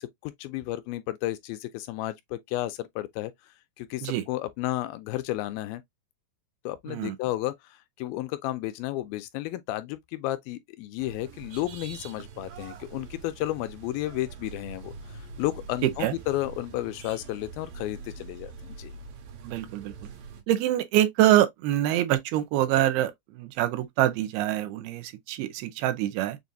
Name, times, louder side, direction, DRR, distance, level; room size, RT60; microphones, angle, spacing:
voice 1, 0.0-3.3 3.8-5.8 6.7-18.9, left 15 dB, 80° left, 2.2 m, -32 dB
sound 1, 11.0-20.4, right 5 dB, 70° right, 2.4 m, -44 dB
voice 2, 15.8-16.1 19.4-19.9 20.5-26.4, right 13 dB, 85° right, 2.6 m, -25 dB
7.0 x 2.5 x 2.6 m
omnidirectional pair, 4.4 m